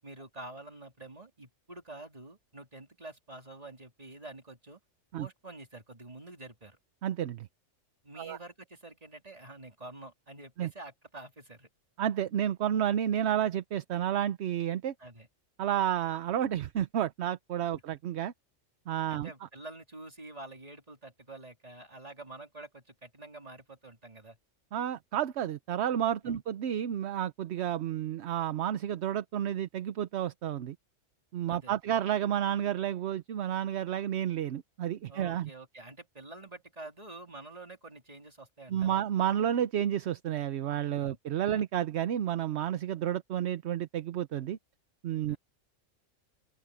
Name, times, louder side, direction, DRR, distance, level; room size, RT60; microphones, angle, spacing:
voice 1, 0.0-4.8 5.2-6.8 8.0-11.7 15.0-15.3 19.1-24.4 26.2-26.4 31.5-31.9 35.1-39.0 41.0-41.2 45.3-45.4, right 2 dB, 30° right, 3.3 m, -48 dB
voice 2, 7.0-7.5 8.2-8.4 10.6-10.7 12.0-14.9 15.6-18.3 18.9-19.3 24.7-30.8 31.3-35.5 38.7-44.6 45.0-45.4, right 10 dB, 65° right, 0.9 m, -31 dB
open air
omnidirectional pair, 1.3 m